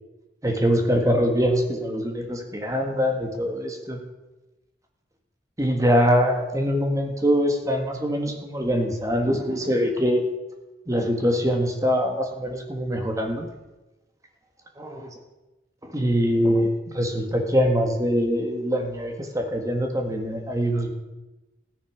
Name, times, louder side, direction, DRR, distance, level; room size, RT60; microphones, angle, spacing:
voice 1, 0.4-4.0 5.6-10.2 10.9-13.5 14.8-15.0 15.9-20.9, equal, 20° right, 3 dB, 1.7 m, -23 dB
14.5 x 10.0 x 5.0 m, 1.1 s
head